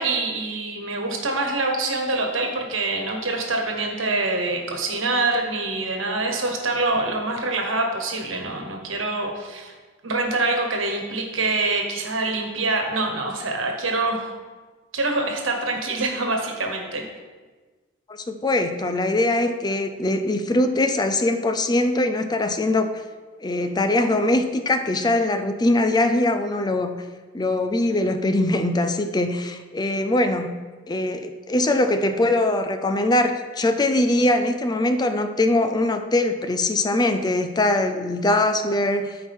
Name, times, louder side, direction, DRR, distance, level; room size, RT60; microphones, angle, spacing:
voice 1, 0.0-9.7 10.0-14.3 14.9-17.0, right 2 dB, 85° right, 2 dB, 1.3 m, -25 dB
voice 2, 18.1-22.9 23.4-27.0 27.3-30.5 30.9-39.2, left 2 dB, 20° left, 7 dB, 0.4 m, -22 dB
13.5 x 4.8 x 3.6 m, 1.4 s
head